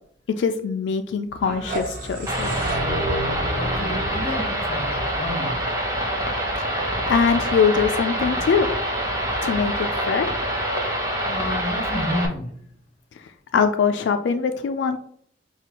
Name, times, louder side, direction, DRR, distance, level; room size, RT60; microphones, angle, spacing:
voice 1, 0.4-2.6 6.6-6.7 7.1-8.7 9.4-9.7 10.1-10.3 13.2-13.3 13.5-15.0, left 6 dB, 80° left, 7 dB, 0.3 m, -22 dB
sound 1, 1.3-6.2, right 1 dB, 55° right, 1.1 m, -31 dB
sound 2, 2.3-12.3, equal, 20° right, 0.8 m, -26 dB
voice 2, 3.6-5.6 11.3-12.5, left 1 dB, 35° left, 2 dB, 1.0 m, -30 dB
5.8 x 2.3 x 2.9 m, 0.63 s
head